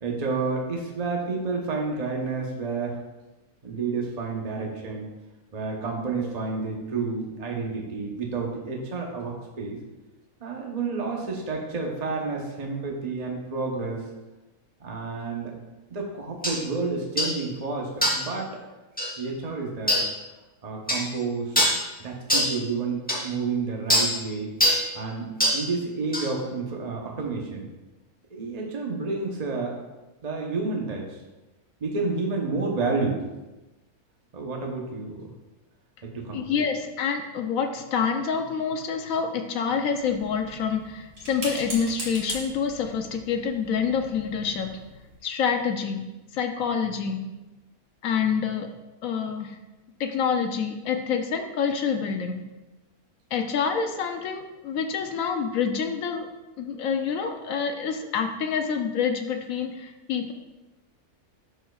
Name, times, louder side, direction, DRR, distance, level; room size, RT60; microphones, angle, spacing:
voice 1, 0.0-3.0 3.6-5.1 5.5-9.8 10.4-14.0 14.8-15.5 15.9-18.6 19.2-20.0 20.6-21.6 22.0-24.5 24.9-27.7 28.3-29.8 30.2-31.2 31.8-33.2 34.3-35.3 36.0-36.6, right 4 dB, 35° right, -1 dB, 0.8 m, -30 dB
sound 1, 16.4-16.6 17.2-17.4 18.0-18.3 19.0-19.1 19.9-20.1 20.9-21.1 21.5-21.8 22.3-22.5 23.1-23.2 23.9-24.1 24.6-24.8 25.4-25.6 26.1-26.3, equal, 5° left, 0.8 m, -22 dB
voice 2, 36.3-44.8 45.2-46.0 46.3-47.2 48.0-48.7 49.0-49.6 50.0-52.4 53.3-56.3 56.6-60.3, left 6 dB, 70° left, 5 dB, 1.0 m, -27 dB
sound 2, 40.0-45.2, right 1 dB, 60° right, 2.6 m, -41 dB
11.0 x 4.4 x 2.3 m, 1.1 s
omnidirectional pair, 1.6 m